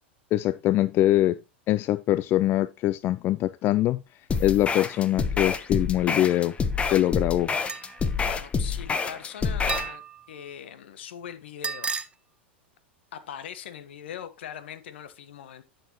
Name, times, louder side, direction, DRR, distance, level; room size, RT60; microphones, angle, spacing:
voice 1, 0.3-1.4 1.7-4.0 4.4-6.5 6.9-7.5, left 14 dB, 35° left, 0.4 m, -23 dB
sound 1, 4.3-9.9, left 5 dB, 20° left, 1.0 m, -27 dB
tacas timtim varias, 7.7-8.0 9.7-10.3 11.6-12.1, right 5 dB, 20° right, 0.7 m, -32 dB
voice 2, 8.2-12.0 13.1-15.6, left 9 dB, 70° left, 1.3 m, -41 dB
10.0 x 6.4 x 3.0 m
hypercardioid pair, 100°, 6 cm